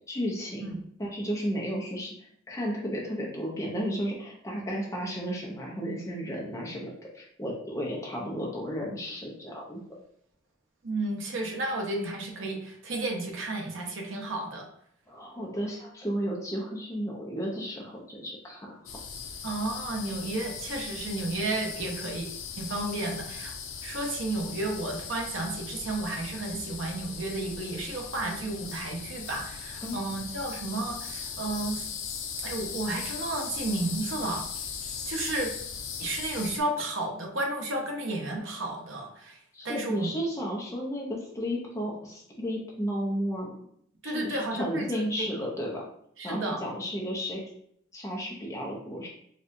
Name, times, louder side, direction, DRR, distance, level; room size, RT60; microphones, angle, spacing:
voice 1, 0.1-2.1 2.5-9.8 15.1-18.8 29.8-30.0 39.5-43.6 44.0-45.9 46.2-47.4 47.9-49.1, equal, 15° left, -3 dB, 0.6 m, -33 dB
voice 2, 10.8-14.7 19.4-22.3 22.6-23.5 23.8-31.9 32.4-34.4 35.1-35.5 36.0-39.4 39.6-40.1 44.0-44.9 45.2-45.3 46.2-46.6, right 2 dB, 85° right, 2 dB, 0.7 m, -32 dB
sound 1, 18.9-36.6, left 6 dB, 90° left, 0.5 m, -39 dB
4.2 x 2.4 x 2.6 m, 0.68 s
head